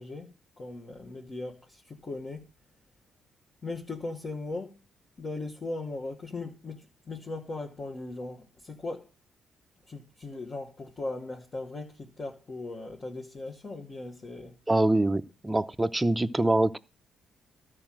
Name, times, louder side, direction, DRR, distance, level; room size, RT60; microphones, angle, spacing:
voice 1, 0.0-2.5 3.6-4.8 5.2-9.1 9.9-14.5, left 2 dB, 35° left, 1.4 m, -38 dB
voice 2, 14.7-16.8, right 1 dB, 10° right, 0.6 m, -24 dB
12.5 x 4.8 x 7.5 m
cardioid pair, 90°, 0 cm